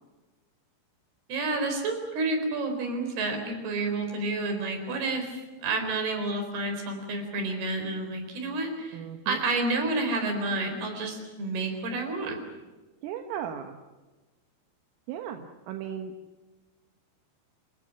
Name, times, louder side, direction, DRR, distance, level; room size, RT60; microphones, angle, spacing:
voice 1, 1.3-12.4, right 2 dB, 50° right, 6 dB, 5.9 m, -30 dB
voice 2, 8.9-9.4 13.0-13.8 15.1-16.1, right 9 dB, 80° right, 6 dB, 3.9 m, -36 dB
28.0 x 16.5 x 10.0 m, 1.2 s
omnidirectional pair, 5.9 m